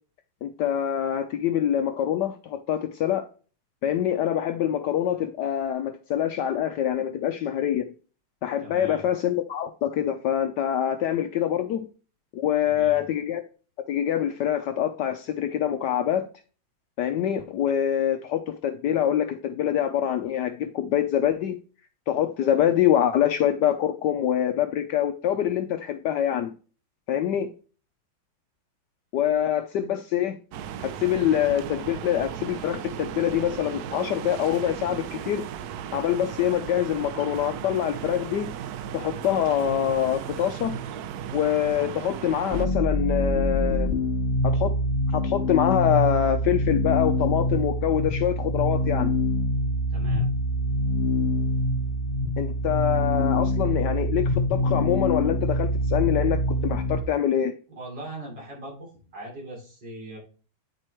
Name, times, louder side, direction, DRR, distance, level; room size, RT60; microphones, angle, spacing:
voice 1, 0.4-3.3 3.8-7.9 8.4-11.9 12.3-13.4 13.9-16.3 17.0-21.6 22.1-26.5 27.1-27.5 29.1-30.4 30.8-35.5 35.9-38.5 38.9-40.8 41.3-43.9 44.4-44.7 45.1-49.1 52.4-57.5, left 10 dB, 75° left, 1.0 m, -25 dB
voice 2, 8.6-9.0 12.6-13.0 49.9-50.3 57.8-60.2, right 1 dB, 55° right, 4.3 m, -40 dB
sound 1, 30.5-42.7, right 9 dB, 80° right, 0.8 m, -36 dB
sound 2, 42.5-57.0, left 1 dB, 45° left, 0.8 m, -25 dB
9.5 x 4.6 x 4.4 m
omnidirectional pair, 2.2 m